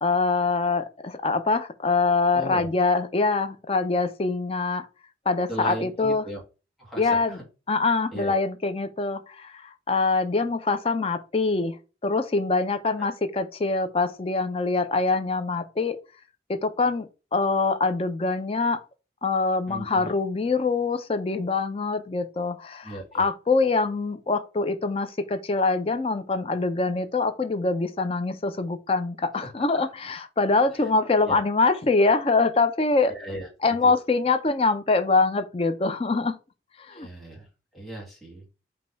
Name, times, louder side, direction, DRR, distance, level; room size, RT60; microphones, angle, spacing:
voice 1, 0.0-4.9 5.3-6.2 7.0-7.4 7.7-11.8 12.0-16.0 16.5-18.8 19.2-33.1 33.6-36.4 36.8-37.1, left 3 dB, 35° left, 0.4 m, -24 dB
voice 2, 2.3-2.7 5.5-6.4 6.8-7.4 8.1-8.4 13.0-13.1 19.7-20.1 22.8-23.3 29.4-29.5 30.8-30.9 31.2-31.4 33.1-34.0 36.9-37.5 37.7-38.4, right 1 dB, ahead, 1.4 m, -37 dB
5.1 x 2.3 x 3.9 m
head